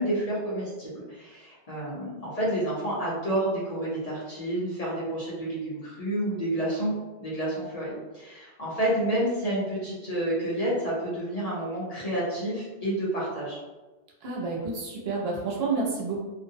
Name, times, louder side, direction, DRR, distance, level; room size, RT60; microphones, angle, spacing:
voice 1, 0.0-6.9 7.2-13.6, right 1 dB, 40° left, -7 dB, 0.7 m, -29 dB
voice 2, 14.2-16.2, right 3 dB, 75° right, -3 dB, 0.9 m, -29 dB
2.4 x 2.0 x 2.7 m, 1.2 s
omnidirectional pair, 1.0 m